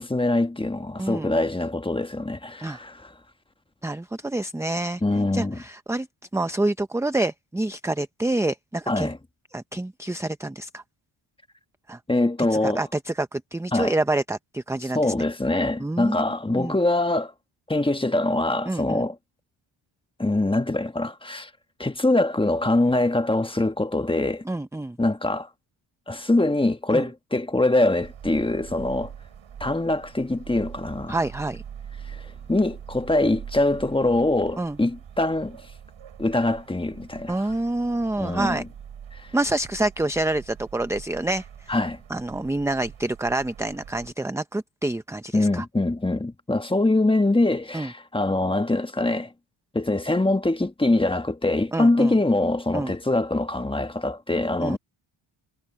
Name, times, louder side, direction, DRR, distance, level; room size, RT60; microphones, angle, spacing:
voice 1, 0.0-3.1 5.0-5.6 8.9-9.2 12.1-12.8 13.7-13.9 14.9-17.3 17.7-19.2 20.2-21.5 21.8-24.4 25.0-25.5 26.1-29.1 29.6-31.2 32.1-32.2 32.5-35.6 36.2-37.4 38.2-38.7 39.1-39.2 41.7-42.0 45.3-49.3 49.7-54.8, left 2 dB, 10° left, 1.2 m, -23 dB
voice 2, 1.0-1.3 2.6-2.8 3.8-5.0 5.3-6.1 6.3-9.1 9.5-10.8 11.9-12.0 12.5-15.1 15.8-16.2 16.6-16.8 18.7-19.1 24.5-25.0 26.9-27.1 31.1-31.6 34.6-34.8 37.3-38.6 39.3-41.7 42.1-45.6 47.7-47.9 51.7-52.1 52.7-53.0 54.6-54.8, right 2 dB, 5° right, 0.6 m, -27 dB
sound 1, 28.0-44.1, right 8 dB, 70° right, 6.1 m, -44 dB
cardioid pair, 95°, 48 cm